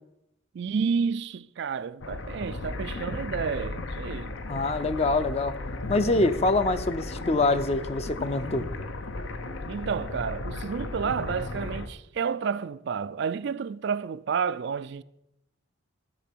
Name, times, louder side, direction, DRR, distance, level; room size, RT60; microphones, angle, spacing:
voice 1, 0.5-4.4 9.7-15.0, right 6 dB, 60° right, 0.4 m, -30 dB
sound 1, 2.0-11.9, left 2 dB, 70° left, 0.8 m, -35 dB
voice 2, 4.5-5.5 5.9-8.7, left 2 dB, 30° left, 0.6 m, -25 dB
13.5 x 4.4 x 8.5 m
head